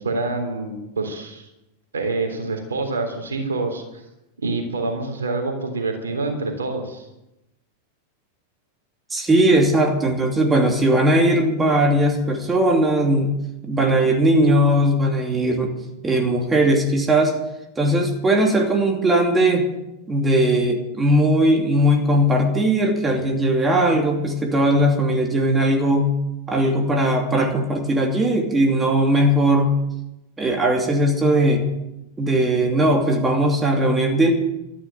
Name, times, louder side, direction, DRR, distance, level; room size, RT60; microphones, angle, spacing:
voice 1, 0.0-1.5 1.9-4.0 4.4-7.1, right 3 dB, 70° right, 4 dB, 3.5 m, -26 dB
voice 2, 9.1-13.3 13.7-15.7 16.0-17.4 17.8-19.7 20.1-26.1 26.5-29.8 30.4-31.6 32.2-34.3, right 1 dB, 15° right, 2 dB, 2.8 m, -19 dB
13.0 x 11.5 x 8.9 m, 0.90 s
figure-of-eight pair, 90°, 0 cm